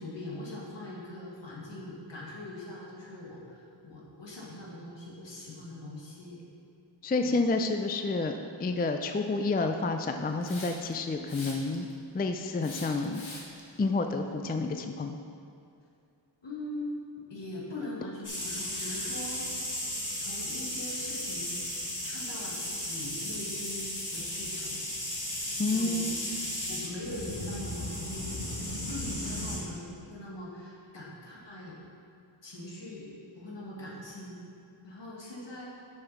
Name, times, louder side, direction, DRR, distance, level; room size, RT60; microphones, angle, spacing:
voice 1, 0.0-6.4 7.2-7.4 16.4-19.4 20.2-21.7 22.0-24.8 25.7-26.1 26.7-28.4 28.8-31.8 32.4-33.1 33.4-34.3 34.8-35.7, left 1 dB, 70° left, -4 dB, 1.9 m, -42 dB
voice 2, 7.0-11.9 12.1-13.3 13.8-15.2 25.6-26.1, left 3 dB, 20° left, 6 dB, 0.3 m, -29 dB
Hiss, 10.4-10.9 11.3-11.9 12.6-13.6, left 2 dB, 90° left, 1.4 m, -43 dB
sound 1, 18.2-29.6, left 1 dB, 40° left, 1.9 m, -35 dB
7.1 x 5.5 x 5.9 m, 2.5 s
wide cardioid pair, 85°, 46 cm